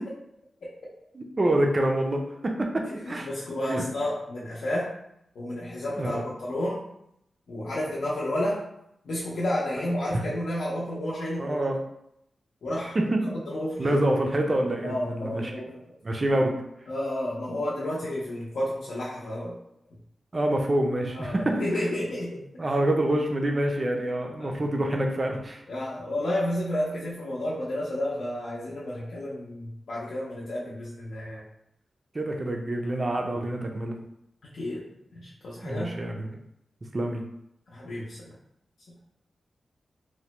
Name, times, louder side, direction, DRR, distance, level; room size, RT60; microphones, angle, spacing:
voice 1, 1.1-3.3 3.7-3.9 6.0-6.2 10.1-10.2 11.4-11.8 13.0-13.3 13.8-15.5 16.0-16.5 20.3-21.6 22.6-25.6 32.1-33.9 35.6-36.3 36.9-37.2, right 1 dB, 30° right, 2 dB, 0.4 m, -26 dB
voice 2, 3.0-4.9 5.3-6.8 7.5-8.6 9.0-11.5 12.6-13.0 13.5-14.0 14.8-15.8 16.9-19.6 21.1-22.4 24.4-24.5 25.7-31.4 33.3-33.5 34.4-34.8 35.2-36.0 37.7-38.3 38.9-39.0, left 1 dB, 75° left, -8 dB, 0.6 m, -31 dB
3.1 x 2.1 x 2.9 m, 0.78 s
wide cardioid pair, 150°, 0 cm